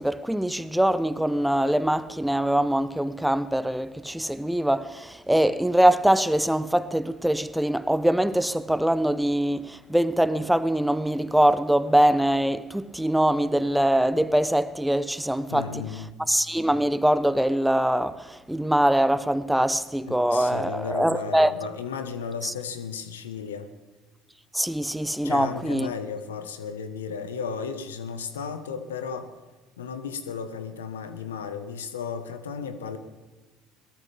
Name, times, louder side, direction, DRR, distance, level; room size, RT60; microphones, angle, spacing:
voice 1, 0.0-15.8 16.3-21.5 22.4-22.5 24.5-25.9, right 1 dB, 5° right, 0.8 m, -23 dB
voice 2, 15.5-16.2 20.1-23.7 25.2-29.3 29.8-33.0, left 6 dB, 90° left, 1.4 m, -34 dB
21.5 x 18.0 x 3.6 m
hypercardioid pair, 65°, 0 cm